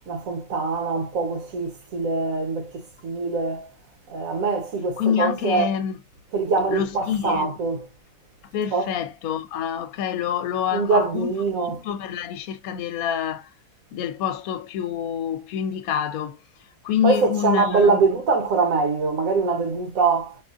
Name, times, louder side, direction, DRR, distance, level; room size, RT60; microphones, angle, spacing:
voice 1, 0.1-3.7 4.1-5.7 6.3-7.9 8.7-9.0 10.7-11.8 17.0-20.4, right 4 dB, 65° right, 1.4 m, -23 dB
voice 2, 5.0-6.0 6.7-7.5 8.5-11.3 11.8-13.5 13.9-16.4 16.8-18.0, left 9 dB, 70° left, 1.0 m, -26 dB
4.8 x 2.4 x 2.5 m
omnidirectional pair, 1.6 m